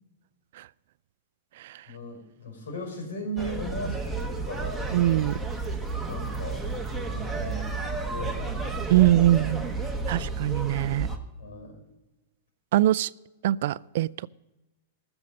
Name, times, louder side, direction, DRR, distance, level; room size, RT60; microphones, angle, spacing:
voice 1, 1.9-4.8 6.0-6.7 7.0-10.3 11.4-11.8, equal, 85° left, 5.4 m, -38 dB
sound 1, 3.4-11.2, right 3 dB, ahead, 1.3 m, -31 dB
voice 2, 4.9-5.4 8.9-9.7 10.1-11.1 12.7-13.1 13.4-14.3, right 14 dB, 60° right, 0.3 m, -22 dB
14.0 x 7.0 x 6.6 m
supercardioid pair, 150°, 0 cm